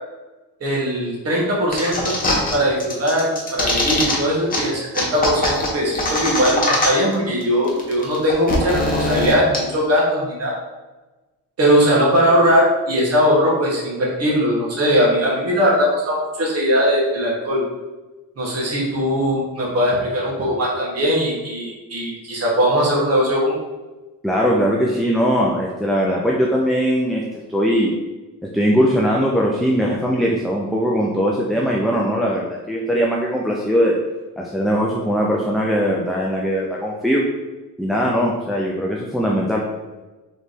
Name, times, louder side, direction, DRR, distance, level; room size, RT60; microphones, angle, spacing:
voice 1, 0.6-2.2 2.5-6.6 6.8-10.5 11.6-17.6 18.4-23.5, equal, 45° right, -4 dB, 1.4 m, -19 dB
sound 1, 1.7-2.5 2.8-4.1 4.5-4.6 4.9-7.1 7.4-7.5 7.7-9.6, left 2 dB, 25° left, 1.0 m, -21 dB
voice 2, 24.2-27.2 27.5-27.9 28.5-34.0 34.4-37.2 37.8-39.6, equal, ahead, -3 dB, 0.4 m, -20 dB
3.4 x 3.0 x 4.1 m, 1.2 s
cardioid pair, 120°, 35 cm